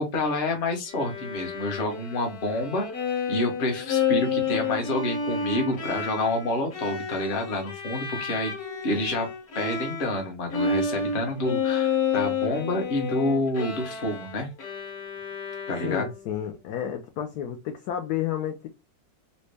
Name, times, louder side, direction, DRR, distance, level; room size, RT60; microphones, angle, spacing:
voice 1, 0.0-2.9 3.3-8.5 8.8-9.3 9.5-14.5 15.7-16.1, left 1 dB, 40° left, 0.8 m, -28 dB
Bowed string instrument, 0.9-10.3 10.5-16.3, left 6 dB, 55° left, 1.4 m, -30 dB
voice 2, 15.8-18.7, left 10 dB, 75° left, 0.9 m, -31 dB
4.1 x 2.1 x 3.3 m
omnidirectional pair, 2.1 m